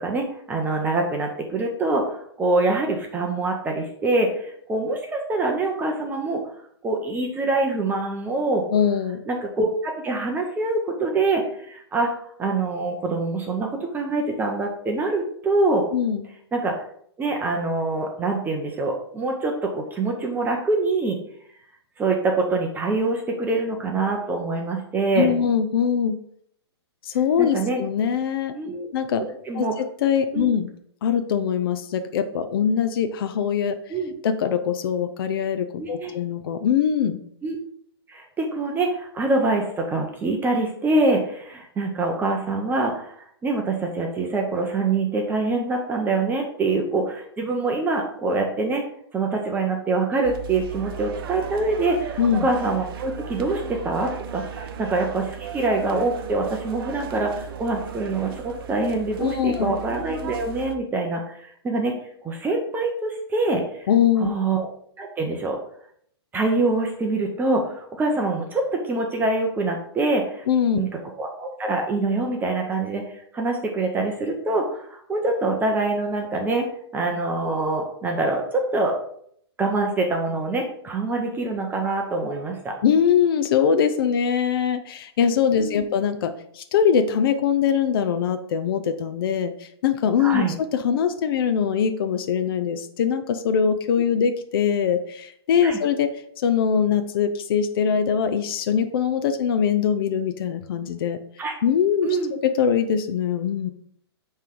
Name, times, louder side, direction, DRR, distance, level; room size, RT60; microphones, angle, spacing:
voice 1, 0.0-6.4 6.8-8.6 9.3-12.1 12.4-15.8 16.5-16.8 17.2-21.2 22.0-25.3 27.4-27.8 28.5-28.9 29.5-29.7 30.3-30.5 33.9-34.1 35.8-36.2 37.4-37.6 38.1-48.8 49.1-61.9 62.2-63.9 64.2-64.7 65.0-65.6 66.3-70.4 70.7-70.9 71.2-73.0 73.3-76.7 76.9-78.9 79.6-82.7 85.6-85.9 90.2-90.5 95.6-95.8 101.4-101.5 102.0-102.3, right 3 dB, 15° right, 1 dB, 0.7 m, -25 dB
voice 2, 8.7-9.2 15.9-16.2 25.1-26.2 27.0-28.5 28.9-29.2 29.5-30.7 31.0-33.9 34.2-37.2 52.2-52.5 59.2-59.7 63.9-64.3 70.5-70.9 82.8-96.1 96.4-101.2 101.6-103.7, left 7 dB, 60° left, 9 dB, 0.6 m, -22 dB
sound 1, 50.2-60.8, right 8 dB, 60° right, 0.7 m, -36 dB
8.9 x 3.3 x 3.8 m, 0.65 s
hypercardioid pair, 130°, 14 cm